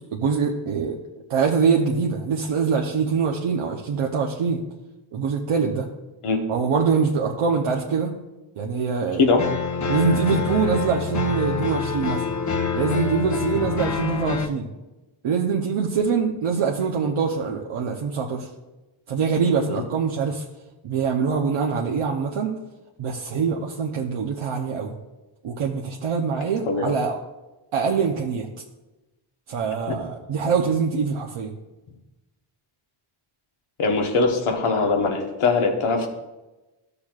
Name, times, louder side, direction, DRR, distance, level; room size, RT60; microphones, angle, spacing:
voice 1, 0.1-1.0 1.3-4.6 5.1-5.9 6.5-8.1 8.6-9.3 9.9-12.3 12.7-14.7 15.2-18.5 19.1-20.4 20.8-22.6 23.0-24.9 25.4-27.2 27.7-28.5 29.5-31.5, right 5 dB, 90° right, 0 dB, 0.9 m, -24 dB
sound 1, 9.4-14.5, left 5 dB, 35° left, 0.8 m, -26 dB
voice 2, 33.8-36.1, left 4 dB, 90° left, 3 dB, 1.3 m, -21 dB
13.5 x 6.9 x 2.4 m, 1.1 s
cardioid pair, 85°, 49 cm